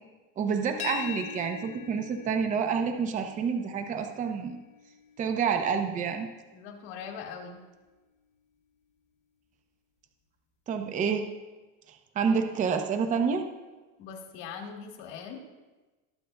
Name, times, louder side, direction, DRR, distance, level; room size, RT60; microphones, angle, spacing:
voice 1, 0.4-4.6 5.2-6.3 10.7-11.3 11.9-13.4, right 6 dB, 25° right, 6 dB, 0.7 m, -28 dB
sound 1, 0.8-6.5, left 9 dB, 20° left, 0.7 m, -43 dB
voice 2, 6.5-7.6 12.3-12.4 14.0-15.4, left 6 dB, 65° left, 1 dB, 2.1 m, -41 dB
20.5 x 8.3 x 2.2 m, 1.2 s
cardioid pair, 155°, 31 cm